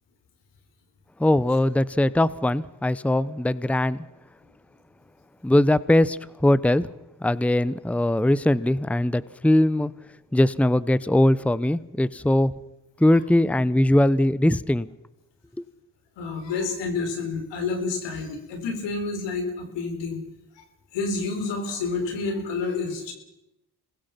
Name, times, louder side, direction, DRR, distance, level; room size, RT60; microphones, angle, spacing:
voice 1, 1.2-4.1 5.4-6.9 7.2-9.9 10.3-12.5 13.0-14.9, left 1 dB, 5° left, 18 dB, 0.9 m, -21 dB
voice 2, 16.2-20.2 20.6-20.7 20.9-23.1, left 4 dB, 90° left, 5 dB, 4.3 m, -29 dB
26.5 x 20.5 x 5.9 m, 0.91 s
supercardioid pair, 50°, 41 cm